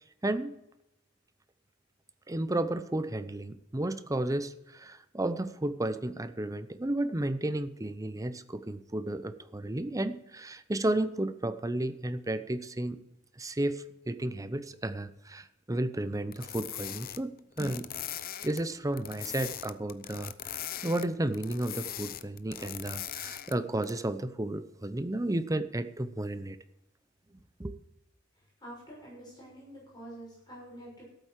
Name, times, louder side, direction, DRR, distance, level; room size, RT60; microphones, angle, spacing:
voice 1, 0.2-0.5 2.3-13.0 13.4-17.3 17.6-17.9 18.4-26.6 27.6-27.7, right 1 dB, 15° right, 12 dB, 0.7 m, -33 dB
sound 1, 16.3-18.6 18.9-21.1 21.3-23.5 23.8-24.0, left 11 dB, 50° left, 0.7 m, -40 dB
voice 2, 28.6-31.0, right 1 dB, 20° left, -6 dB, 6.3 m, -47 dB
13.5 x 8.1 x 7.5 m, 0.86 s
head